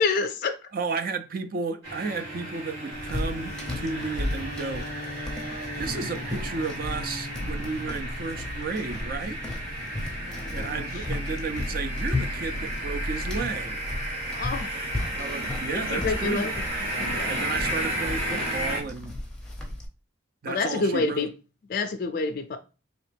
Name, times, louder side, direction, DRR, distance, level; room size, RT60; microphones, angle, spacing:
voice 1, 0.0-0.6 10.2-10.9 14.3-14.8 15.7-16.5 17.0-17.6 20.5-21.3 21.7-22.6, left 4 dB, 45° left, 0.3 m, -28 dB
voice 2, 0.7-4.9 5.8-9.4 10.5-13.7 14.7-16.5 17.2-19.2 20.4-21.3, right 4 dB, 45° right, 0.4 m, -33 dB
sound 1, 1.8-18.8, right 1 dB, 65° right, 2.0 m, -33 dB
sound 2, 2.9-19.9, left 1 dB, 5° left, 0.7 m, -35 dB
4.0 x 2.9 x 3.3 m
head